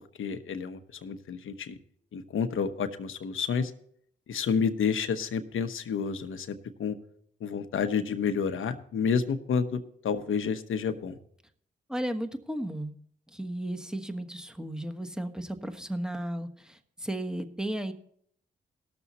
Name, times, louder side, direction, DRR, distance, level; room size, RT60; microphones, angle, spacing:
voice 1, 0.2-1.7 2.1-3.7 4.3-7.0 7.4-9.8 10.0-11.1, left 6 dB, 75° left, 9 dB, 1.0 m, -30 dB
voice 2, 11.9-12.9 13.3-17.9, right 1 dB, 5° right, 8 dB, 1.4 m, -34 dB
18.0 x 7.0 x 4.2 m, 0.66 s
cardioid pair, 55°, 21 cm